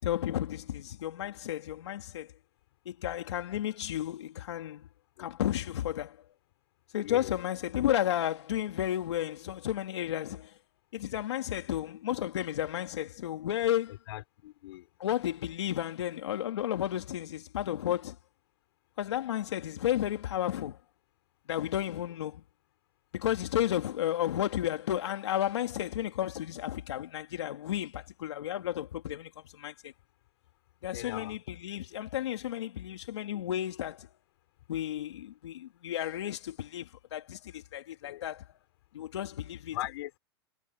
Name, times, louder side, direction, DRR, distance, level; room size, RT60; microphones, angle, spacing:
voice 1, 0.0-2.3 2.8-4.9 5.2-6.2 6.9-10.6 10.9-14.0 15.0-18.2 19.0-20.8 21.5-22.4 23.1-29.9 30.8-34.1 34.7-38.4 38.9-39.8, left 11 dB, 85° left, 3.3 m, -32 dB
voice 2, 7.0-7.3 14.1-14.9 30.9-31.4 33.3-33.4 38.0-38.3 39.7-40.2, left 16 dB, 65° left, 5.4 m, -40 dB
supercardioid pair, 140°, 14 cm